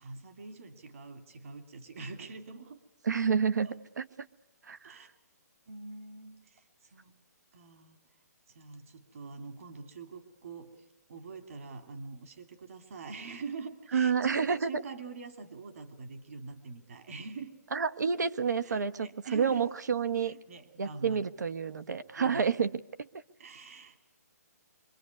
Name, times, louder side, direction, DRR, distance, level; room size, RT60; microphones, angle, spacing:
voice 1, 0.0-2.8 3.6-3.7 4.8-5.1 5.7-7.1 7.5-8.0 8.5-17.5 18.6-19.7 20.2-21.3 22.2-22.5 23.4-24.0, right 4 dB, 55° right, 7 dB, 2.7 m, -44 dB
voice 2, 3.0-4.1 4.6-5.0 13.9-14.8 17.7-20.3 20.8-22.7, right 6 dB, 85° right, 12 dB, 1.3 m, -29 dB
25.5 x 24.5 x 9.6 m, 0.85 s
hypercardioid pair, 170°, 9 cm